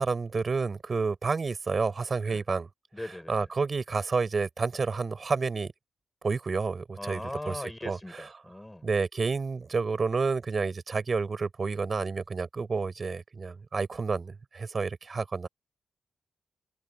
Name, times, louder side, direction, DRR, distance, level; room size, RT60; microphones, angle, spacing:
voice 1, 0.0-2.7 3.3-5.7 6.2-8.3 8.8-15.5, right 4 dB, 50° right, 6.1 m, -30 dB
voice 2, 2.9-3.5 7.0-8.9, left 1 dB, 15° left, 5.2 m, -39 dB
hypercardioid pair, 40°, 0 cm